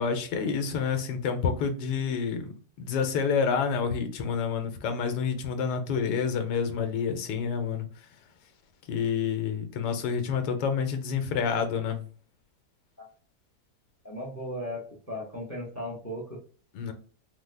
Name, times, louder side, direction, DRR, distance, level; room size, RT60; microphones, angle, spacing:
voice 1, 0.0-7.9 8.9-12.1 16.7-16.9, left 6 dB, 85° left, 1.2 m, -28 dB
voice 2, 14.0-16.4, equal, 20° left, 0.4 m, -36 dB
3.4 x 2.1 x 3.2 m
omnidirectional pair, 1.8 m